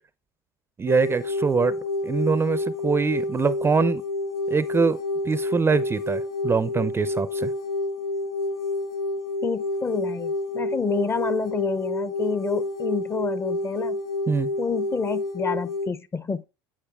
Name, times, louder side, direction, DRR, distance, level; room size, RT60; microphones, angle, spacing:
voice 1, 0.8-1.8 2.0-4.0 4.5-5.0 5.3-7.5 14.3-14.5, right 5 dB, 20° right, 0.5 m, -23 dB
sound 1, 0.9-15.9, left 2 dB, 85° left, 1.2 m, -29 dB
voice 2, 9.4-14.0 14.6-16.4, left 4 dB, 20° left, 0.6 m, -28 dB
9.9 x 4.7 x 3.4 m
hypercardioid pair, 85°, 12 cm